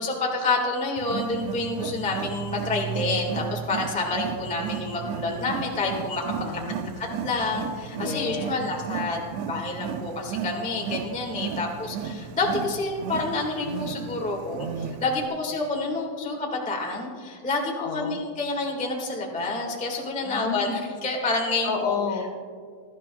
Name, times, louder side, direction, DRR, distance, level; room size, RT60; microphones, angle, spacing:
voice 1, 0.0-6.2 7.0-22.0, left 3 dB, 10° left, 0 dB, 0.4 m, -28 dB
Wild animals, 1.0-15.3, right 7 dB, 80° right, 1.6 m, -34 dB
voice 2, 6.3-7.2 8.0-8.6 11.5-11.8 17.8-18.2 20.2-20.8 21.6-22.3, left 6 dB, 75° left, 3 dB, 2.5 m, -32 dB
21.5 x 12.0 x 2.3 m, 2.1 s
omnidirectional pair, 3.6 m